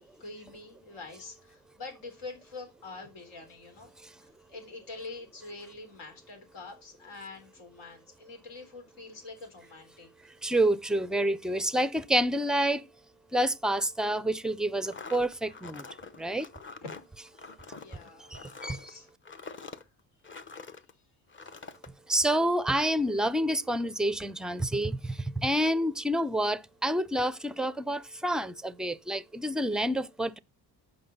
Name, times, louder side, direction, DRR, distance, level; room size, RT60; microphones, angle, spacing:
voice 1, 0.0-3.9 4.2-10.1 16.8-16.9 17.8-19.1, left 3 dB, 85° left, 3.8 m, -45 dB
voice 2, 10.4-12.8 13.3-15.8 16.2-16.5 18.3-18.9 22.1-30.4, right 1 dB, ahead, 0.4 m, -28 dB
sound 1, 14.8-20.9 21.3-21.9, left 4 dB, 30° left, 0.9 m, -45 dB
8.7 x 5.6 x 5.4 m
cardioid pair, 110°, 42 cm